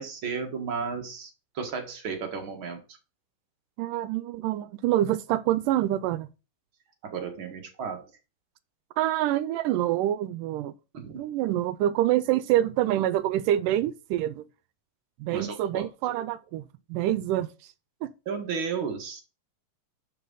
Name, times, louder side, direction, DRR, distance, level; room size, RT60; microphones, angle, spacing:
voice 1, 0.0-2.8 7.0-8.0 10.9-11.2 15.3-15.8 18.3-19.2, right 5 dB, 45° right, 2.0 m, -33 dB
voice 2, 3.8-6.3 9.0-10.7 11.2-14.4 15.2-16.6 16.9-17.5 18.0-18.1, right 13 dB, 85° right, 2.2 m, -26 dB
11.0 x 5.0 x 3.9 m
omnidirectional pair, 3.8 m